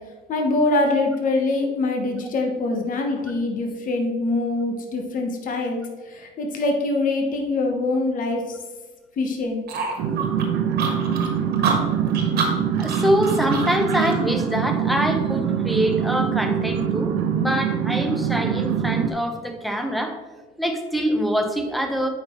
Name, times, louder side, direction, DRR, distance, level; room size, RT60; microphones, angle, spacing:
voice 1, 0.3-8.6 9.2-9.6, left 2 dB, 50° left, 2 dB, 1.0 m, -24 dB
sound 1, 9.7-14.2, right 4 dB, 65° right, 1.4 m, -28 dB
sound 2, 10.0-19.1, right 8 dB, 85° right, 0.6 m, -24 dB
voice 2, 12.8-20.2 20.6-22.1, equal, ahead, 3 dB, 0.9 m, -24 dB
8.6 x 5.3 x 3.0 m, 1.3 s
cardioid pair, 110°, 17 cm